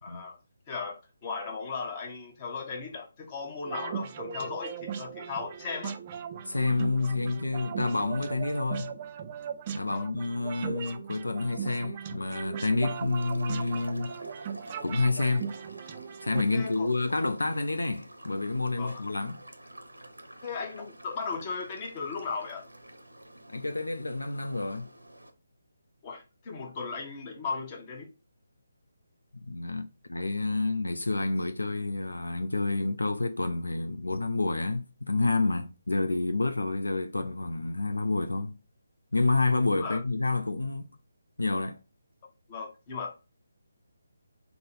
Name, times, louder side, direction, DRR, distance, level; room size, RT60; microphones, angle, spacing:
voice 1, 0.0-0.4 0.7-6.0 9.8-10.1 16.5-16.9 18.8-19.0 20.4-22.7 26.0-28.1 39.8-40.0 42.5-43.2, left 4 dB, 25° left, 0.8 m, -37 dB
sound 1, 3.7-16.4, right 7 dB, 30° right, 0.4 m, -38 dB
voice 2, 6.5-8.9 9.7-14.2 14.8-15.5 16.2-19.4 23.5-24.9 29.5-38.6 39.1-40.9 41.4-41.8, left 3 dB, 75° left, 0.4 m, -29 dB
sound 2, 12.9-25.3, right 1 dB, 85° right, 0.6 m, -49 dB
3.7 x 2.0 x 4.1 m
figure-of-eight pair, 150°, 0 cm